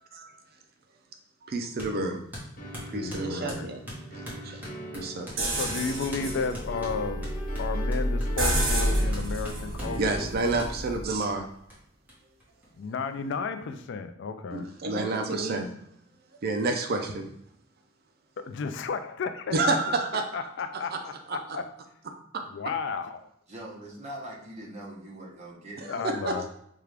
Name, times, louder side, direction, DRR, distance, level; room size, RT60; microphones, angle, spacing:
voice 1, 1.4-2.2 2.9-3.8 4.1-4.6 4.9-5.5 10.0-11.5 14.5-15.9 16.4-17.3 19.5-20.5 20.9-21.0 21.3-21.4 22.3-22.4 26.0-26.5, right 2 dB, 50° right, 5 dB, 0.4 m, -29 dB
sound 1, 1.8-2.0 2.3-5.4 5.7-5.8 6.1-6.3 6.5-10.0 10.6-10.7 11.2-11.3 11.7-11.8 12.1-12.2 12.4-13.1, equal, 10° right, 1.1 m, -42 dB
sound 2, 2.6-10.8, right 1 dB, 45° left, 0.9 m, -41 dB
voice 2, 2.9-3.7 5.5-7.3 7.6-10.2 12.8-14.7 18.4-19.6 20.3-21.7 22.5-23.3 25.9-26.5, left 5 dB, 60° left, 9 dB, 0.3 m, -33 dB
sound 3, 5.4-11.2, equal, 85° right, 1.2 m, -29 dB
voice 3, 23.5-26.0, right 1 dB, 35° right, -2 dB, 0.9 m, -42 dB
4.6 x 2.4 x 3.3 m, 0.74 s
head